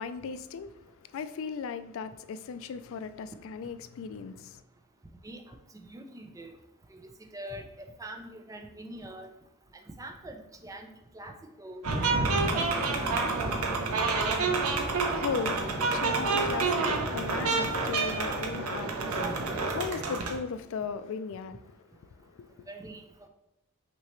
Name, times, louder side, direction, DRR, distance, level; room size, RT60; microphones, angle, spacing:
voice 1, 0.0-4.6 14.4-22.7, left 5 dB, 65° left, 0.3 m, -38 dB
voice 2, 5.2-6.5 7.0-7.7 8.0-9.3 10.0-10.9 11.1-11.9 12.5-13.4 18.5-18.6 22.7-23.0, right 1 dB, 15° right, 0.4 m, -44 dB
sound 1, 11.8-20.4, right 3 dB, 90° right, 0.7 m, -28 dB
5.9 x 2.8 x 3.1 m
head